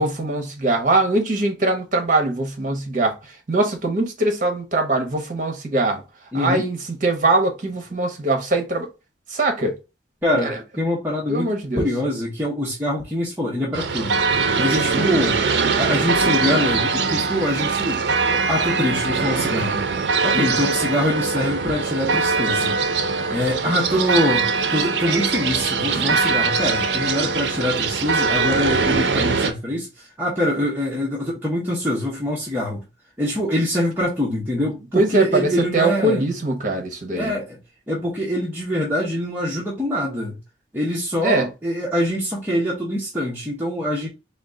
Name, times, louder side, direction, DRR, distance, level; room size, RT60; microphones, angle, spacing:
voice 1, 0.0-6.0 6.3-8.9 9.3-9.7 10.4-10.6 11.3-11.9 14.9-15.3 20.3-20.6 25.9-26.2 34.9-37.3 41.2-41.5, right 2 dB, 45° right, 0.9 m, -22 dB
voice 2, 6.3-6.6 10.2-11.5 11.8-14.2 14.6-15.4 15.8-18.0 18.3-19.9 20.2-22.8 23.3-32.8 33.2-36.3 37.1-37.6 37.9-40.4 40.7-44.1, left 1 dB, 10° right, 0.8 m, -24 dB
sound 1, 13.7-29.5, right 4 dB, 65° right, 0.5 m, -22 dB
3.7 x 2.3 x 3.7 m
head